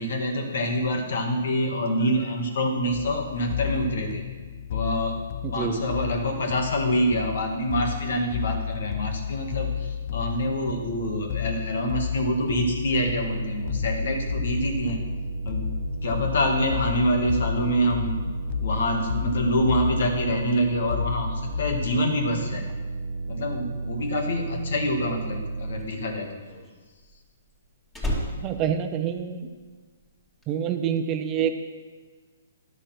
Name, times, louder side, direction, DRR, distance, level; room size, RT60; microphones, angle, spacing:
voice 1, 0.0-4.3 4.7-5.2 5.5-15.0 15.4-15.7 16.0-18.3 18.6-22.6 23.3-26.4, equal, 65° left, 3 dB, 2.1 m, -26 dB
sound 1, 2.9-22.0, left 9 dB, 45° left, 0.6 m, -32 dB
voice 2, 5.4-5.8 28.4-29.5 30.5-31.5, right 8 dB, 25° right, 7 dB, 0.8 m, -27 dB
sound 2, 12.9-25.8, right 3 dB, 75° right, 0.8 m, -33 dB
Slam, 25.6-29.7 30.0-30.4, left 1 dB, 10° left, 2.4 m, -34 dB
11.0 x 6.6 x 6.1 m, 1.4 s
hypercardioid pair, 140°, 0 cm